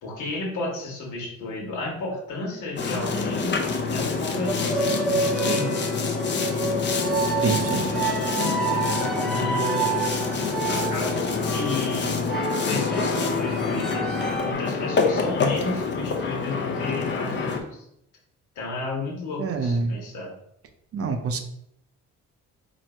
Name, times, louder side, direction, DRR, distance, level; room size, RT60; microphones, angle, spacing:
voice 1, 0.0-3.6 3.9-5.9 7.8-8.0 8.7-9.9 10.7-12.2 12.7-17.8 18.5-20.3, left 2 dB, 85° left, -2 dB, 1.4 m, -32 dB
Boat Water vehicle, 2.8-17.6, left 4 dB, 40° left, 0.6 m, -26 dB
sound 1, 4.5-14.5, right 4 dB, ahead, 0.7 m, -29 dB
voice 2, 7.4-7.8 19.4-19.9 20.9-21.4, right 4 dB, 50° right, 6 dB, 0.6 m, -26 dB
3.0 x 2.6 x 4.3 m, 0.74 s
cardioid pair, 90°, 30 cm